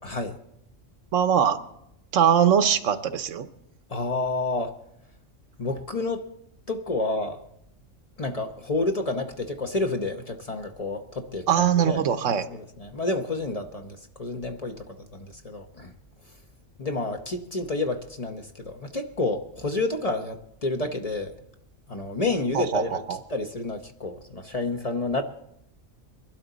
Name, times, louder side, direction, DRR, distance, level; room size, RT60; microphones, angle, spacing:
voice 1, 0.0-0.4 3.9-4.8 5.6-6.3 6.7-7.4 8.2-12.0 12.5-14.9 15.1-15.9 16.8-21.3 21.9-23.0 23.3-25.2, left 2 dB, 35° left, 5 dB, 0.8 m, -29 dB
voice 2, 1.1-1.6 2.1-3.5 11.5-12.5 22.5-23.2, right 8 dB, 80° right, 11 dB, 1.1 m, -22 dB
22.5 x 12.0 x 4.0 m, 0.78 s
omnidirectional pair, 1.3 m